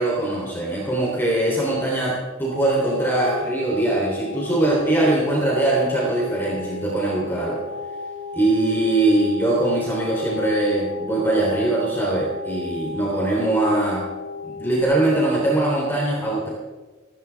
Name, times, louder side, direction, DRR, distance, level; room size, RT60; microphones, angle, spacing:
voice 1, 0.0-7.6 8.3-14.1 14.5-16.5, right 2 dB, 10° left, -4 dB, 3.5 m, -22 dB
sound 1, 2.5-14.8, left 2 dB, 80° left, 2.3 m, -34 dB
18.5 x 16.5 x 3.6 m, 1.3 s
head